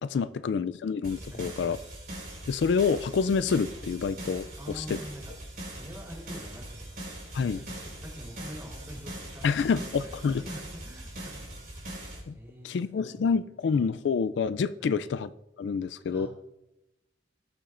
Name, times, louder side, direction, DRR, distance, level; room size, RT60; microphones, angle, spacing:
voice 1, 0.0-1.8 2.5-5.0 7.3-7.6 9.4-10.4 12.3-12.4 12.6-15.3 15.6-16.3, left 5 dB, 75° left, 0.3 m, -27 dB
sound 1, 1.0-12.2, right 1 dB, 50° right, 4.3 m, -41 dB
voice 2, 1.3-1.8 4.6-9.6 9.8-11.9 12.3-13.3 14.8-15.1 16.1-16.3, equal, 15° right, 3.7 m, -46 dB
19.0 x 7.1 x 2.5 m
head